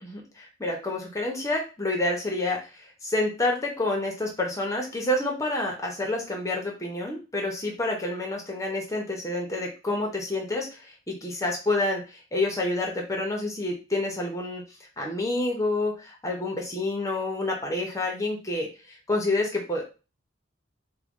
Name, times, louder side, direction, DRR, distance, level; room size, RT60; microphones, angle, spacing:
voice 1, 0.0-14.6 15.0-19.9, left 2 dB, 15° left, 0 dB, 0.8 m, -28 dB
3.6 x 2.3 x 3.6 m, 0.31 s
head